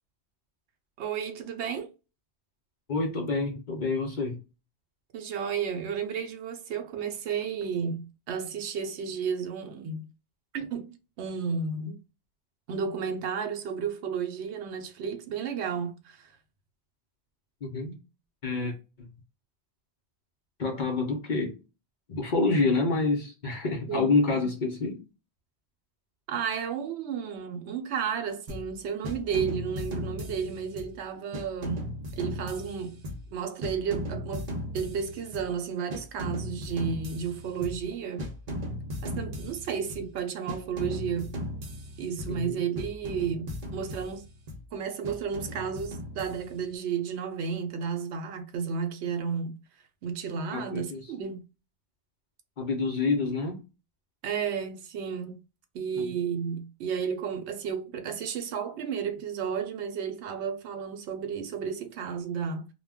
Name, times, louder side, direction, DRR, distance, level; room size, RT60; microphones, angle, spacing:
voice 1, 1.0-1.9 5.1-10.0 10.5-10.9 11.2-12.0 12.7-16.3 23.9-24.1 24.4-24.5 26.3-33.0 33.3-34.5 34.7-38.3 39.0-41.4 42.0-44.3 44.7-49.6 50.0-51.4 54.2-55.4 55.7-62.7, right 7 dB, 80° right, 0.9 m, -32 dB
voice 2, 2.9-4.4 17.6-18.0 18.4-19.1 20.6-21.6 22.1-25.0 42.3-42.6 50.5-51.1 52.6-53.6 55.9-56.1, left 3 dB, 50° left, 0.7 m, -28 dB
sound 1, 28.5-28.8 29.0-31.0 31.3-33.4 33.6-35.6 35.9-37.9 38.2-40.1 40.5-42.5 42.8-44.7 45.0-46.7, left 1 dB, 50° right, 0.6 m, -37 dB
2.2 x 2.1 x 3.4 m
omnidirectional pair, 1.1 m